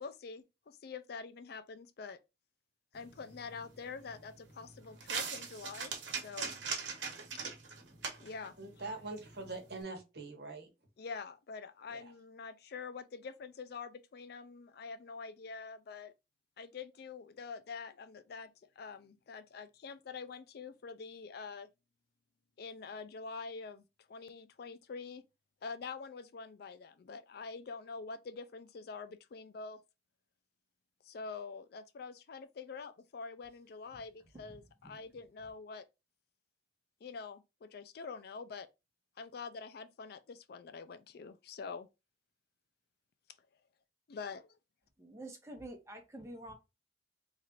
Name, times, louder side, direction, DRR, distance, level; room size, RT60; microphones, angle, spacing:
voice 1, 0.0-2.2 2.9-6.5 8.2-8.6 11.0-16.1 16.6-18.5 18.8-21.7 22.6-25.2 25.6-29.8 31.0-35.8 37.0-38.7 39.2-41.9 44.1-44.5, left 5 dB, 55° left, 0.4 m, -46 dB
sound 1, 2.9-9.8, right 5 dB, 80° right, 1.1 m, -43 dB
voice 2, 8.6-10.7 11.9-12.0, right 3 dB, 65° right, 1.1 m, -43 dB
voice 3, 45.0-46.5, right 1 dB, 15° right, 1.0 m, -47 dB
3.2 x 2.5 x 4.2 m
head